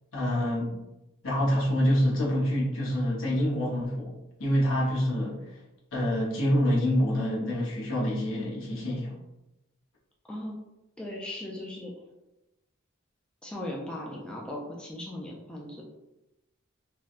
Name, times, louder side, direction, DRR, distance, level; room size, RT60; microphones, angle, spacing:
voice 1, 0.1-0.8 1.2-4.1 4.4-5.4 5.9-9.1, equal, 70° left, -4 dB, 0.9 m, -26 dB
voice 2, 11.0-11.9 13.4-15.8, left 1 dB, 5° left, -3 dB, 0.3 m, -38 dB
3.3 x 2.1 x 2.4 m, 0.95 s
head